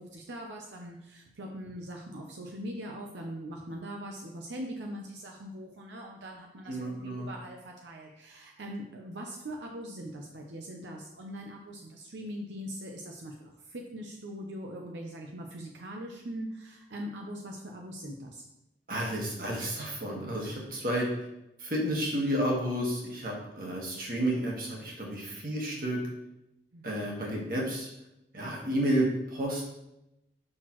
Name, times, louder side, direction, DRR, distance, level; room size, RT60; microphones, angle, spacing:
voice 1, 0.0-18.4 26.7-27.1, equal, 85° right, 1 dB, 0.7 m, -41 dB
voice 2, 6.7-7.3 18.9-21.3 21.6-26.0 26.8-27.9 28.3-29.6, right 1 dB, 50° right, -2 dB, 1.6 m, -31 dB
6.4 x 6.0 x 3.1 m, 0.88 s
head